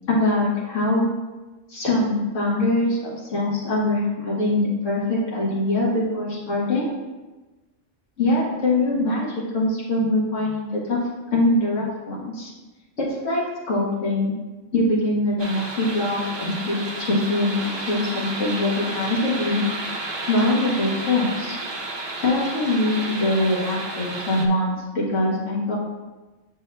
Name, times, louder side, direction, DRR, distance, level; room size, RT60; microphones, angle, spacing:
voice 1, 0.1-1.1 1.7-6.9 8.2-9.3 9.5-11.0 11.3-12.5 13.0-14.3 14.7-19.6 20.3-21.6 22.2-25.7, left 2 dB, 80° left, -5 dB, 1.5 m, -23 dB
sound 1, 15.4-24.5, right 2 dB, 45° right, 0.3 m, -32 dB
7.4 x 6.2 x 2.2 m, 1.2 s
omnidirectional pair, 1.3 m